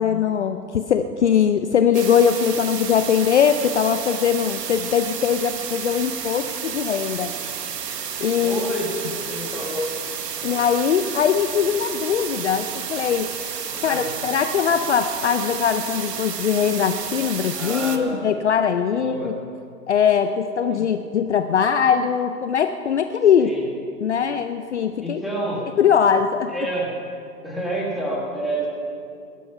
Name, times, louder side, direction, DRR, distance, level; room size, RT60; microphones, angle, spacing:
voice 1, 0.0-7.3 8.2-8.6 10.4-13.3 13.8-19.3 19.9-23.5 24.0-25.2 25.8-26.5, left 7 dB, 45° left, 9 dB, 0.6 m, -21 dB
sound 1, 1.9-18.0, right 7 dB, 80° right, 1.4 m, -31 dB
voice 2, 8.4-9.8 10.4-10.6 13.7-14.1 17.5-18.3 19.0-19.3 20.7-20.8 23.4-23.6 25.0-25.6 26.5-26.9 27.4-28.7, right 1 dB, ahead, -5 dB, 1.3 m, -29 dB
19.5 x 11.5 x 5.7 m, 2.5 s
hypercardioid pair, 160°, 48 cm